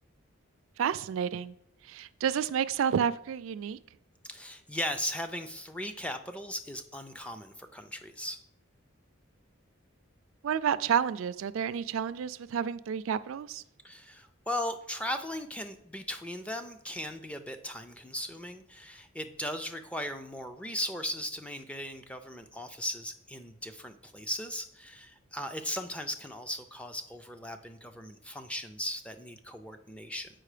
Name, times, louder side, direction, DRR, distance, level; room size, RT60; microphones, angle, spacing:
voice 1, 0.8-1.5 1.9-3.8 10.4-13.6, right 8 dB, 75° right, 15 dB, 0.3 m, -30 dB
voice 2, 4.3-8.4 13.8-30.3, left 1 dB, 5° left, 7 dB, 0.4 m, -37 dB
7.6 x 5.2 x 4.9 m, 0.72 s
head